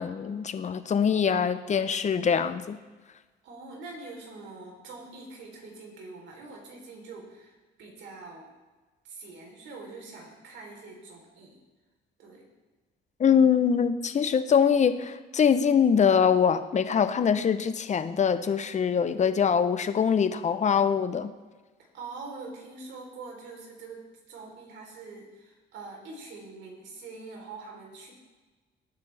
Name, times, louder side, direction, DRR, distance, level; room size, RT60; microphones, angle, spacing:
voice 1, 0.0-2.8 13.2-21.3, left 7 dB, 40° left, 11 dB, 0.8 m, -23 dB
voice 2, 3.4-8.5 9.0-11.6 12.2-12.4 21.9-28.1, right 3 dB, 80° right, 0 dB, 3.7 m, -44 dB
18.5 x 9.2 x 3.4 m, 1.3 s
cardioid pair, 100°, 19 cm